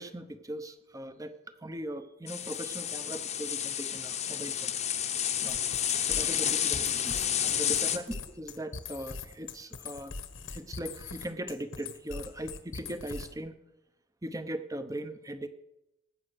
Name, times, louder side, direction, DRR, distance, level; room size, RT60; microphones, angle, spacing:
voice 1, 0.0-4.7 5.4-5.6 6.0-10.2 10.5-13.5 14.2-15.5, right 1 dB, 15° right, 11 dB, 0.8 m, -39 dB
sound 1, 2.3-8.0, left 9 dB, 30° left, 0.9 m, -30 dB
sound 2, 5.5-13.5, left 4 dB, 70° left, 1.2 m, -42 dB
19.0 x 8.8 x 6.3 m, 0.90 s
head